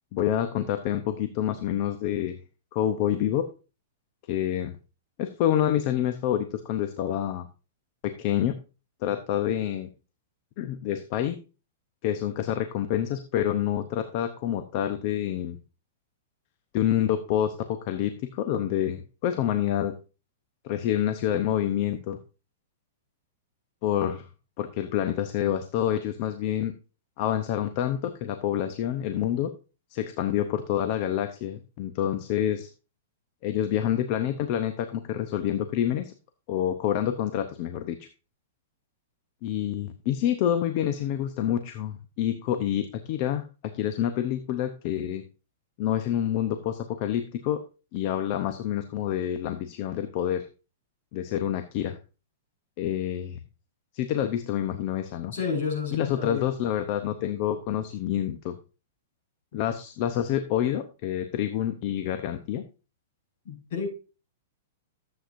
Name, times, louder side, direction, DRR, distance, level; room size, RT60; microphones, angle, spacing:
voice 1, 0.1-2.4 2.7-3.5 4.3-4.8 5.2-7.5 8.0-8.6 9.0-9.9 10.6-11.4 12.0-15.6 16.7-19.9 20.6-22.2 23.8-24.3 24.6-26.7 27.2-29.5 29.9-32.7 33.4-36.1 36.5-38.0 39.4-43.4 43.7-45.2 45.8-47.6 47.9-50.5 51.1-52.0 52.8-53.4 53.9-55.3 55.9-58.6 59.5-62.6, left 11 dB, 40° left, 9 dB, 0.7 m, -27 dB
voice 2, 55.3-56.5 59.5-59.6 63.5-63.9, left 5 dB, 60° left, 0 dB, 5.3 m, -30 dB
13.0 x 7.8 x 2.6 m, 0.32 s
hypercardioid pair, 155°, 0 cm